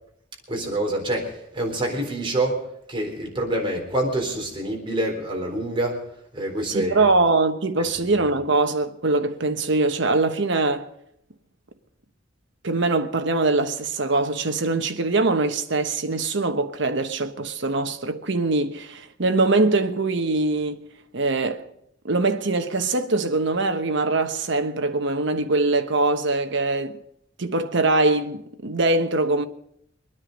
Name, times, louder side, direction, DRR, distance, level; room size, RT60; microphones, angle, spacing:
voice 1, 0.5-6.0 6.3-7.1 7.8-8.1, right 1 dB, 25° right, 3.9 m, -27 dB
voice 2, 6.7-10.9 12.6-20.8 21.1-21.6 22.0-27.0 27.4-29.5, right 3 dB, 65° right, 1.1 m, -22 dB
24.0 x 9.9 x 5.3 m
head